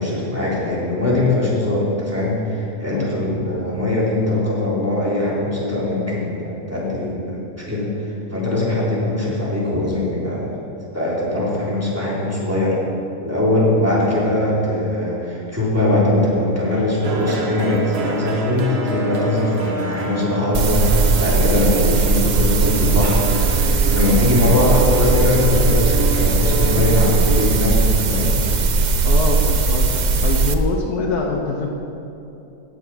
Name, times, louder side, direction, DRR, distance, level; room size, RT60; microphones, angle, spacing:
voice 1, 0.0-7.4 7.6-10.6 10.9-12.8 13.2-28.4, left 2 dB, 10° right, -6 dB, 3.3 m, -21 dB
sound 1, 17.0-27.5, right 4 dB, 45° right, 1.2 m, -28 dB
sound 2, 20.5-30.5, right 4 dB, 60° right, 0.4 m, -18 dB
voice 2, 29.0-31.7, left 4 dB, 75° left, 1 dB, 1.6 m, -24 dB
17.0 x 8.0 x 6.1 m, 2.8 s
omnidirectional pair, 1.7 m